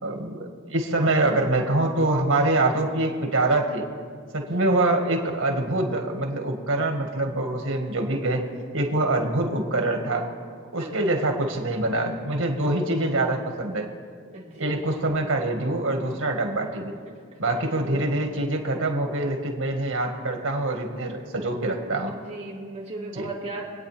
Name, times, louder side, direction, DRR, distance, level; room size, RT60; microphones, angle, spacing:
voice 1, 0.0-3.8 4.3-8.4 8.7-10.3 10.7-13.9 14.6-16.9 17.4-22.1 23.2-23.3, right 2 dB, 85° right, 3 dB, 1.8 m, -25 dB
voice 2, 4.5-4.9 10.7-11.3 14.3-15.0 17.6-18.3 22.1-23.6, right 2 dB, 30° right, -6 dB, 2.3 m, -38 dB
25.5 x 9.0 x 3.5 m, 2.1 s
head